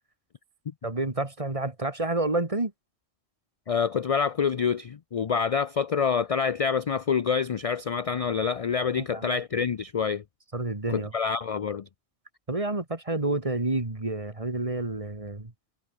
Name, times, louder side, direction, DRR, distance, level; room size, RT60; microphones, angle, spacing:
voice 1, 0.8-2.7 9.0-9.4 10.5-11.1 12.5-15.5, right 2 dB, 30° right, 2.2 m, -29 dB
voice 2, 3.7-10.2 10.9-11.9, left 6 dB, 50° left, 0.4 m, -27 dB
omnidirectional pair, 1.2 m